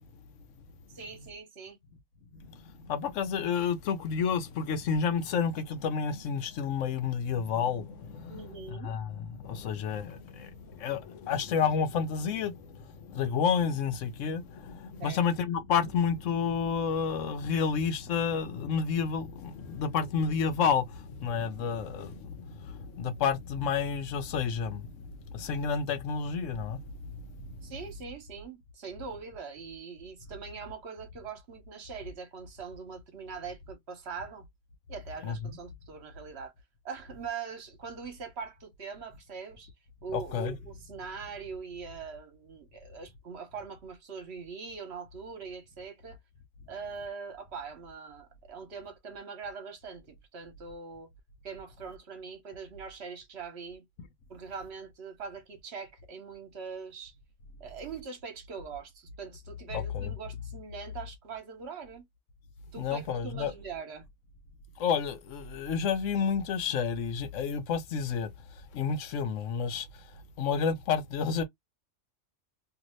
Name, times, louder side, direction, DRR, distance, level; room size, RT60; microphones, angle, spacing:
voice 1, 0.9-1.8 8.3-8.9 15.0-15.2 27.6-34.5 34.9-36.5 36.8-39.7 40.0-46.2 46.7-51.1 51.4-53.9 54.3-57.1 57.6-62.1 62.7-64.1, right 5 dB, 60° right, 1.2 m, -42 dB
voice 2, 2.3-8.4 8.7-25.0 25.3-27.1 27.4-27.6 35.2-35.4 40.1-40.5 59.7-60.1 62.8-63.5 64.8-68.3 68.7-69.9 70.4-71.4, left 6 dB, 85° left, 1.0 m, -30 dB
2.6 x 2.6 x 3.0 m
omnidirectional pair, 1.3 m